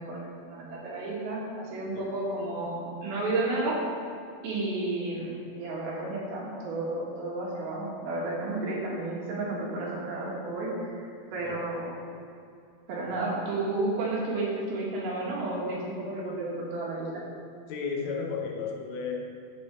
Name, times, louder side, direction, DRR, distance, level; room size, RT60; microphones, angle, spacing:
voice 1, 0.0-3.8 4.4-12.0 12.9-17.2, right 2 dB, 75° right, -5 dB, 3.7 m, -32 dB
voice 2, 17.7-19.1, left 5 dB, 80° left, 1 dB, 2.8 m, -34 dB
14.5 x 5.7 x 3.5 m, 2.5 s
omnidirectional pair, 4.3 m